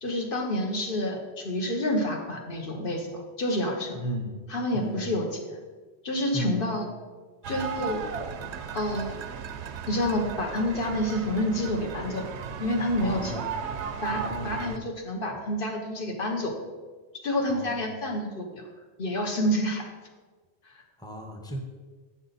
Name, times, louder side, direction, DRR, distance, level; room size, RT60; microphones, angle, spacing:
voice 1, 0.0-4.0 4.5-5.6 6.0-6.9 7.5-8.0 8.7-9.2 9.9-12.3 12.6-13.3 14.0-16.6 17.2-18.6 19.0-19.8 20.7-20.8, left 1 dB, 55° left, 2 dB, 1.3 m, -28 dB
voice 2, 3.9-4.4 4.7-5.1 6.3-6.6 13.0-13.6 14.1-14.6 17.5-17.8 21.0-21.6, right 1 dB, 5° left, 2 dB, 0.9 m, -34 dB
sound 1, 7.4-14.8, right 6 dB, 85° right, 0.9 m, -36 dB
8.9 x 6.2 x 4.1 m, 1.4 s
omnidirectional pair, 1.1 m